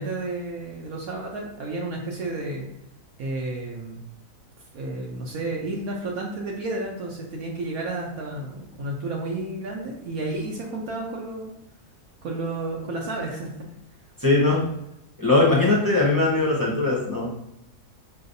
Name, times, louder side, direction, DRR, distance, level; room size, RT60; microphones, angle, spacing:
voice 1, 0.0-2.7 3.2-4.0 4.7-11.5 12.2-13.5, right 2 dB, 70° right, -1 dB, 1.1 m, -31 dB
voice 2, 14.2-14.6 15.2-17.3, left 2 dB, 20° left, -4 dB, 0.6 m, -20 dB
5.6 x 3.3 x 2.6 m, 0.81 s
omnidirectional pair, 1.7 m